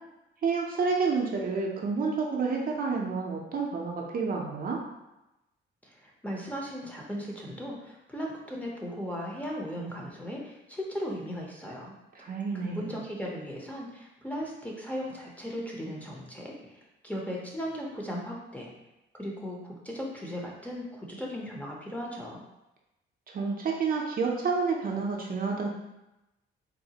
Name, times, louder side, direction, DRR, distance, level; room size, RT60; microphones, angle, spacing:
voice 1, 0.4-4.8 12.2-12.9 23.3-25.7, right 4 dB, 45° right, -1 dB, 0.6 m, -29 dB
voice 2, 5.8-11.9 12.5-18.7 19.2-22.4, equal, 5° left, -2 dB, 0.7 m, -37 dB
3.9 x 2.0 x 2.8 m, 0.94 s
cardioid pair, 90°, 20 cm